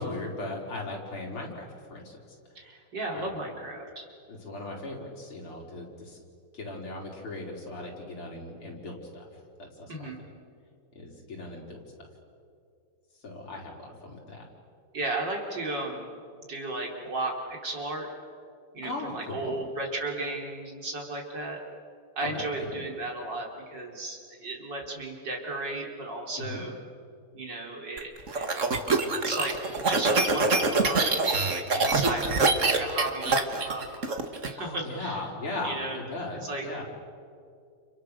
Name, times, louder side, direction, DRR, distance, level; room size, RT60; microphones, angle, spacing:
voice 1, 0.0-2.3 3.1-3.3 4.3-6.2 6.5-9.3 9.6-10.1 10.9-11.8 13.2-14.5 18.8-19.5 22.2-22.7 26.4-26.6 34.6-36.8, left 2 dB, 80° left, -1 dB, 5.3 m, -38 dB
voice 2, 2.6-4.1 9.9-10.2 14.9-16.1 16.5-18.1 18.7-21.6 22.2-26.7 27.3-28.5 29.2-29.5 29.8-31.2 31.5-33.8 34.5-35.2 35.6-36.0 36.4-36.6, right 2 dB, 55° right, 0 dB, 4.2 m, -34 dB
sound 1, 28.0-34.5, right 3 dB, 35° right, 2.0 m, -25 dB
30.0 x 30.0 x 6.7 m, 2.4 s
omnidirectional pair, 2.4 m